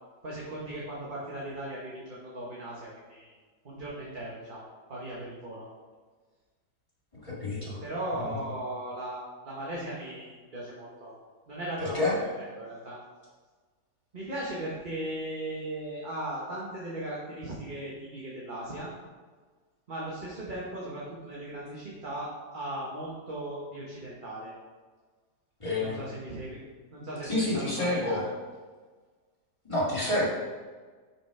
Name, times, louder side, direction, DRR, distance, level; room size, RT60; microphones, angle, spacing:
voice 1, 0.2-3.3 3.6-5.7 7.8-11.1 11.5-13.0 14.1-18.9 19.9-24.5 25.8-26.6 26.9-28.3, right 1 dB, 30° right, -5 dB, 1.3 m, -37 dB
voice 2, 7.2-7.8 8.3-8.4 11.8-12.1 25.6-26.0 27.2-28.2 29.6-30.3, left 2 dB, 20° left, -8 dB, 2.4 m, -28 dB
6.3 x 6.0 x 4.8 m, 1.4 s
omnidirectional pair, 1.8 m